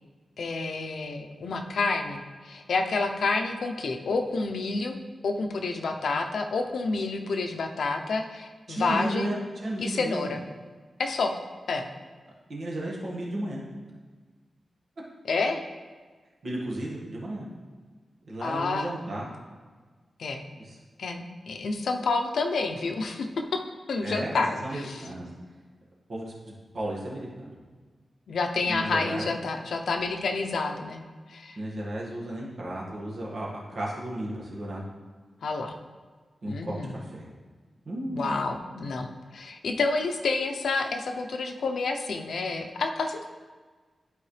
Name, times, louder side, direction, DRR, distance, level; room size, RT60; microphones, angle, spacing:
voice 1, 0.4-5.0 5.2-9.3 9.8-10.4 11.0-11.3 11.7-11.9 15.2-15.6 18.4-18.9 20.2-20.4 21.0-23.6 23.9-25.0 28.3-31.0 31.3-31.6 35.4-35.7 36.5-36.9 38.1-43.3, left 3 dB, 75° left, 4 dB, 0.6 m, -29 dB
voice 2, 8.7-9.4 9.6-10.3 12.5-13.6 16.4-17.5 18.3-19.3 20.6-20.8 24.0-25.3 26.1-27.5 28.7-29.3 31.6-34.8 36.4-37.2 37.9-38.6, right 1 dB, 55° right, -4 dB, 1.8 m, -34 dB
11.5 x 4.7 x 3.3 m, 1.4 s
wide cardioid pair, 160°, 0 cm